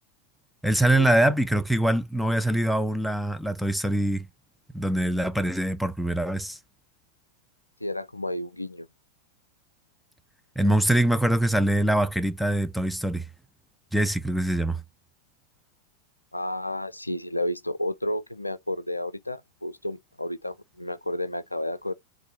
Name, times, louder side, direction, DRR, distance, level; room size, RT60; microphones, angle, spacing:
voice 1, 0.6-4.3 4.7-6.6 10.6-13.2 13.9-14.8, right 1 dB, ahead, 0.4 m, -23 dB
voice 2, 7.8-8.9 16.3-21.9, left 1 dB, 85° left, 0.3 m, -31 dB
3.5 x 2.3 x 3.2 m
figure-of-eight pair, 90°, 0 cm